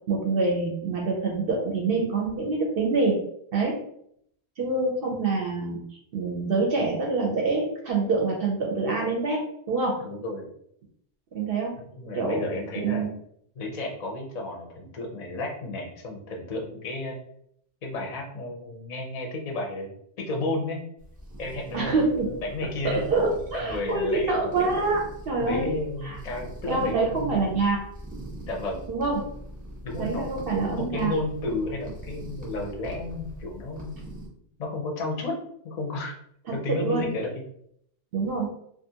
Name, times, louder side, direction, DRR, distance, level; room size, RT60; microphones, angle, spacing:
voice 1, 0.1-3.2 3.5-3.8 4.6-5.8 6.1-10.0 11.3-11.7 12.1-12.5 12.8-13.1 21.7-22.3 22.8-25.7 26.0-26.2 26.7-27.8 28.9-29.3 30.0-31.1 36.7-37.1 38.1-38.5, right 3 dB, 60° right, -1 dB, 0.7 m, -26 dB
voice 2, 10.0-10.5 11.9-13.1 13.6-17.2 17.8-19.9 20.2-20.8 21.4-23.0 23.5-24.3 24.8-24.9 25.4-27.3 28.5-29.0 29.8-30.2 30.5-34.0 34.6-35.3 35.6-36.1 36.5-37.4, left 2 dB, 45° left, 1 dB, 0.6 m, -32 dB
sound 1, 21.0-34.3, right 1 dB, 10° right, 0.7 m, -42 dB
2.5 x 2.4 x 2.7 m, 0.69 s
omnidirectional pair, 1.2 m